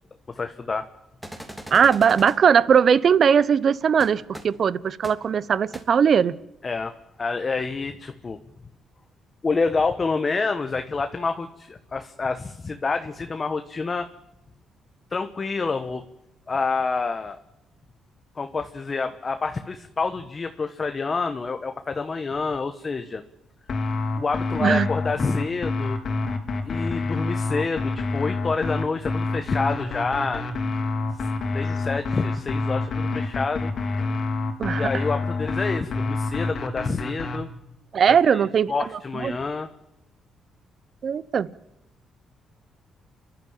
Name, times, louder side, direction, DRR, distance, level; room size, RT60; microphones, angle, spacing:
voice 1, 0.3-0.9 6.6-8.4 9.4-14.1 15.1-16.0 16.5-17.4 18.3-23.2 24.2-26.0 26.6-30.4 31.2-33.7 34.7-37.5 38.1-39.7, left 4 dB, 35° left, 8 dB, 1.2 m, -28 dB
sound 1, 1.2-2.4 4.0-4.1 4.3-4.4 5.0-5.1 5.7-5.8, equal, 5° right, 3.2 m, -38 dB
voice 2, 1.7-6.3 24.6-24.9 34.6-34.9 37.9-38.7 39.2-39.4 41.0-41.5, right 7 dB, 55° right, 19 dB, 0.8 m, -19 dB
sound 2, 23.7-37.4, left 3 dB, 50° left, 3.0 m, -27 dB
30.0 x 12.0 x 9.0 m, 0.87 s
cardioid pair, 90°, 0 cm